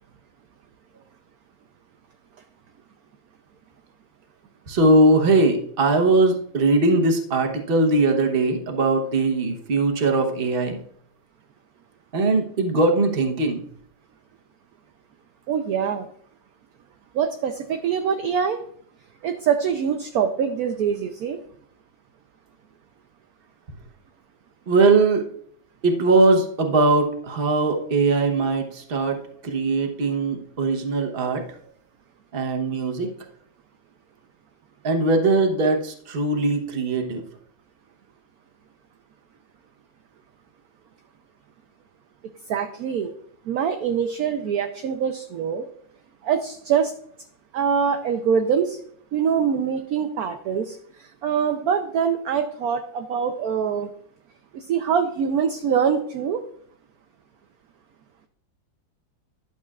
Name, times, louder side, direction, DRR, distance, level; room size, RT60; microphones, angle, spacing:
voice 1, 4.7-10.8 12.1-13.6 24.7-25.3 25.8-31.4 32.3-33.1 34.8-37.2, right 2 dB, 35° right, 3 dB, 1.0 m, -20 dB
voice 2, 15.5-16.1 17.1-18.6 19.2-21.4 42.5-43.1 43.5-45.7 46.2-46.9 47.5-48.8 49.1-53.9 54.5-56.4, right 7 dB, 70° right, 6 dB, 0.9 m, -24 dB
11.5 x 6.8 x 2.4 m, 0.64 s
omnidirectional pair, 2.1 m